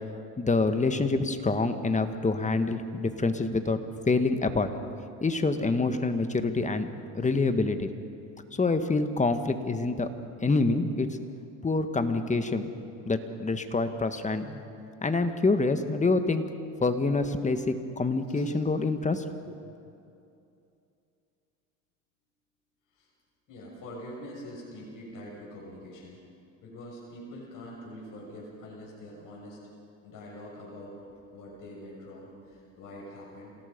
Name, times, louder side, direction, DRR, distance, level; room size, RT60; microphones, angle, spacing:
voice 1, 0.4-3.8 4.1-4.7 5.2-6.9 7.1-7.9 8.5-10.1 10.4-11.1 11.6-12.7 13.1-14.6 15.0-16.4 16.8-19.6, left 3 dB, 20° left, 8 dB, 1.7 m, -26 dB
voice 2, 23.5-26.2 26.6-29.6 30.0-33.6, left 1 dB, 55° left, -3 dB, 6.8 m, -44 dB
27.5 x 17.5 x 5.4 m, 2.6 s
supercardioid pair, 85°, 38 cm